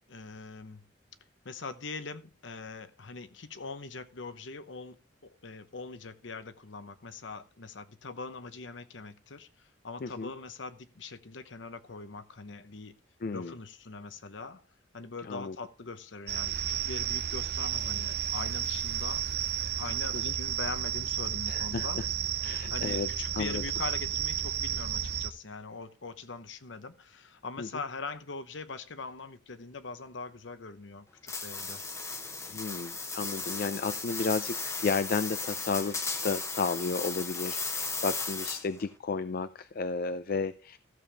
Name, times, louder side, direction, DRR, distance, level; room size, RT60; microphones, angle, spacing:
voice 1, 0.1-0.9 1.4-5.0 5.2-13.0 13.3-14.6 14.9-22.0 22.7-31.8, left 4 dB, 70° left, 0.9 m, -42 dB
voice 2, 10.0-10.3 13.2-13.5 15.2-15.6 20.1-20.3 21.5-22.1 22.4-23.6 27.6-27.7 32.5-40.8, left 4 dB, 50° left, 0.4 m, -33 dB
sound 1, 16.3-25.3, right 10 dB, 55° right, 0.6 m, -32 dB
sound 2, 31.3-38.8, left 4 dB, 15° left, 0.9 m, -36 dB
14.0 x 7.1 x 3.4 m
head